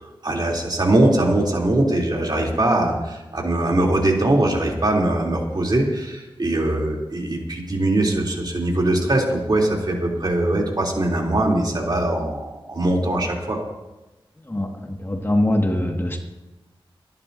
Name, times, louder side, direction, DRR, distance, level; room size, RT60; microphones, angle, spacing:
voice 1, 0.2-13.6, right 1 dB, 50° right, -1 dB, 3.1 m, -21 dB
voice 2, 14.5-16.2, left 1 dB, 25° left, 2 dB, 1.8 m, -22 dB
26.5 x 11.5 x 2.7 m, 1.0 s
wide cardioid pair, 60°, 9 cm